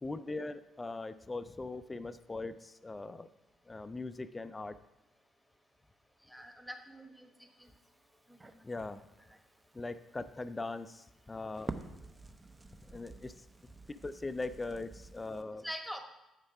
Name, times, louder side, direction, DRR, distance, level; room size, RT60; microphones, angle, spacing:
voice 1, 0.0-3.3 3.7-4.8 8.6-9.0 9.7-11.7 12.9-13.3 13.9-15.7, left 3 dB, 25° left, 13 dB, 0.4 m, -40 dB
voice 2, 6.3-7.3 7.6-7.7 8.3-8.7 15.6-16.0, equal, ahead, 5 dB, 1.1 m, -44 dB
Crackle, 7.6-15.4, right 2 dB, 20° right, 0.7 m, -50 dB
8.1 x 5.2 x 4.8 m, 0.97 s
hypercardioid pair, 45°, 0 cm